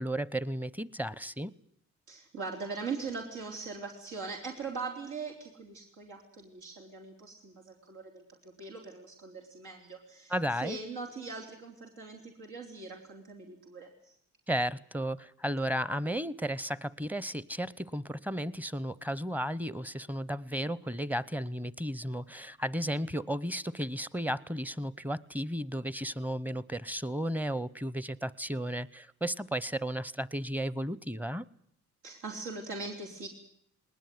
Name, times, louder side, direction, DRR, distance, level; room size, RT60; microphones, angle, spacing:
voice 1, 0.0-1.5 10.3-10.8 14.5-31.4, equal, 5° right, 20 dB, 0.9 m, -34 dB
voice 2, 2.1-14.2 32.0-33.3, right 4 dB, 75° right, 0 dB, 4.0 m, -41 dB
20.0 x 19.5 x 9.6 m, 0.69 s
cardioid pair, 90°, 30 cm